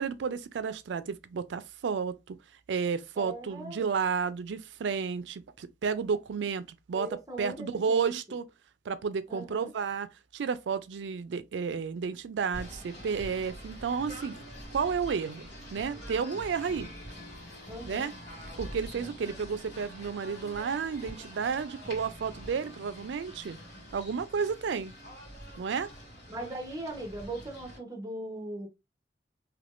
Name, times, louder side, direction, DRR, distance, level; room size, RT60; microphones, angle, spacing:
voice 1, 0.0-2.4 2.7-7.1 7.4-8.4 8.9-10.1 10.3-14.4 14.7-16.9 17.9-18.1 18.6-23.6 23.9-24.9 25.6-25.9, right 6 dB, 80° right, 0.4 m, -32 dB
voice 2, 3.2-3.8 6.9-8.2 9.3-9.7 17.7-18.1 19.0-19.1 26.3-28.7, right 1 dB, 20° right, 0.9 m, -39 dB
Singing / Bird, 12.5-27.8, equal, 70° left, 1.8 m, -45 dB
3.4 x 2.9 x 2.5 m
head